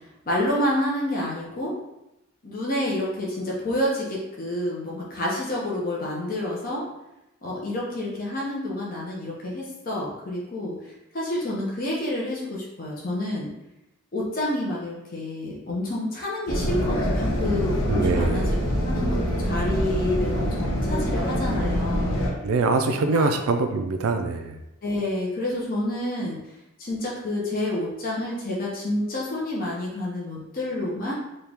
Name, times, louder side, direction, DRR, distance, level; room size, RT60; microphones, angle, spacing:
voice 1, 0.3-1.7 2.4-6.8 7.4-13.5 14.1-18.5 18.8-22.2 23.1-23.4 24.8-26.4 26.8-31.1, left 1 dB, 45° left, -4 dB, 0.8 m, -28 dB
sound 1, 16.5-22.3, equal, 85° left, 0.9 m, -25 dB
voice 2, 17.9-18.5 22.4-24.6, right 3 dB, 85° right, 6 dB, 0.4 m, -24 dB
4.3 x 2.3 x 3.4 m, 0.91 s
head